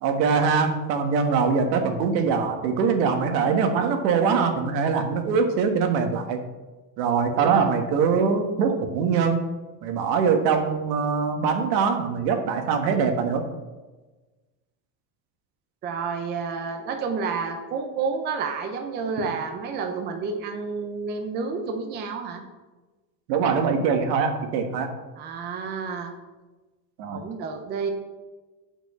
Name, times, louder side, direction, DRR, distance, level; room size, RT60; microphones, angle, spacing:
voice 1, 0.0-6.4 7.0-9.4 9.8-13.4 23.3-24.9 27.0-27.2, right 5 dB, 80° right, 5 dB, 1.5 m, -23 dB
voice 2, 15.8-22.4 25.2-26.1 27.1-27.9, right 5 dB, 20° right, 5 dB, 0.6 m, -30 dB
6.7 x 5.9 x 6.9 m, 1.2 s
cardioid pair, 170°, 49 cm